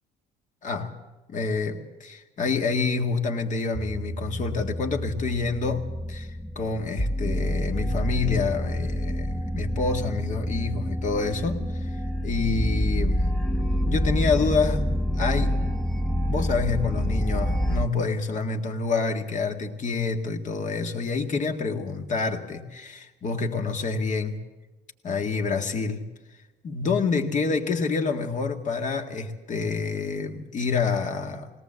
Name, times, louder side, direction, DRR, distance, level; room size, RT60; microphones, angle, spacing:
voice 1, 0.6-1.0 1.3-13.3 13.9-15.6 16.3-24.4 25.0-26.0 26.6-31.5, left 4 dB, 45° left, 4 dB, 1.9 m, -28 dB
sound 1, 3.8-17.9, equal, 5° left, 0.9 m, -27 dB
20.5 x 18.0 x 7.6 m, 1.2 s
cardioid pair, 110°, 17 cm